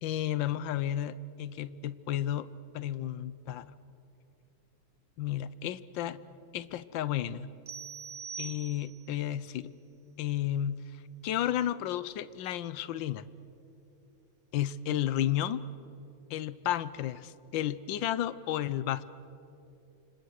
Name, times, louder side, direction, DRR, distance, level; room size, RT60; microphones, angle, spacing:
voice 1, 0.0-2.5 2.7-3.8 5.2-6.2 6.5-7.5 8.4-9.7 10.2-10.8 11.2-13.3 14.5-15.6 16.3-19.0, left 11 dB, 65° left, 16 dB, 1.3 m, -32 dB
sound 1, 7.7-9.2, right 6 dB, 40° right, 1.8 m, -43 dB
29.5 x 26.5 x 6.5 m, 2.8 s
omnidirectional pair, 2.4 m